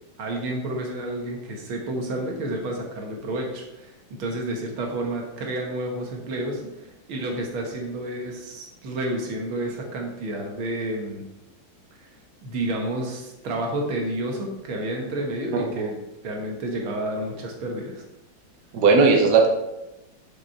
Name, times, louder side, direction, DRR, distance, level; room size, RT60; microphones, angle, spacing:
voice 1, 0.2-11.2 12.4-16.0 16.2-18.0, right 1 dB, 85° right, 1 dB, 2.1 m, -30 dB
voice 2, 15.5-15.9 18.7-19.5, right 4 dB, 60° right, 2 dB, 1.5 m, -18 dB
6.9 x 6.0 x 4.5 m, 0.93 s
omnidirectional pair, 2.2 m